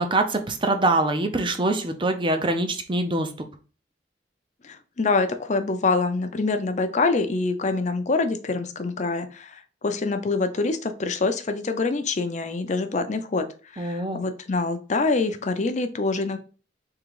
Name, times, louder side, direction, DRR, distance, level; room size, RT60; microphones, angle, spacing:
voice 1, 0.0-3.3 13.8-14.2, right 2 dB, 25° right, 7 dB, 0.6 m, -24 dB
voice 2, 4.6-13.5 13.7-16.4, left 3 dB, 40° left, 8 dB, 0.5 m, -25 dB
3.7 x 2.9 x 4.7 m, 0.37 s
head